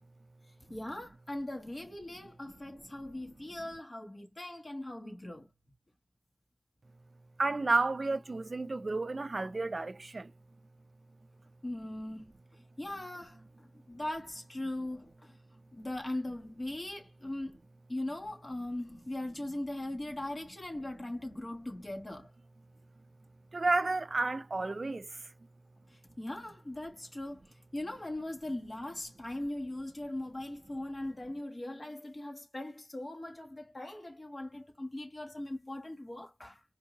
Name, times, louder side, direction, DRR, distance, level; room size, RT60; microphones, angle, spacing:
voice 1, 0.7-5.5 11.6-15.4 15.7-17.6 17.9-22.3 25.9-36.6, left 1 dB, 50° left, 1.4 m, -40 dB
voice 2, 7.4-10.3 23.5-25.3, right 3 dB, 75° right, 0.3 m, -31 dB
4.6 x 2.7 x 2.7 m
wide cardioid pair, 65°, 0 cm